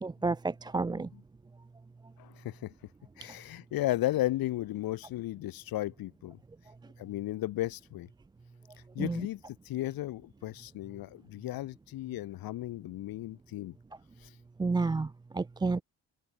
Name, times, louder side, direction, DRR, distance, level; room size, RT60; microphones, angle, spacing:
voice 1, 0.0-1.1 9.0-9.2 14.6-15.8, right 3 dB, 10° right, 0.5 m, -30 dB
voice 2, 2.2-2.7 3.2-6.4 7.0-8.1 9.0-13.7 14.2-14.3, left 15 dB, 70° left, 1.9 m, -35 dB
open air
cardioid pair, 160°, 36 cm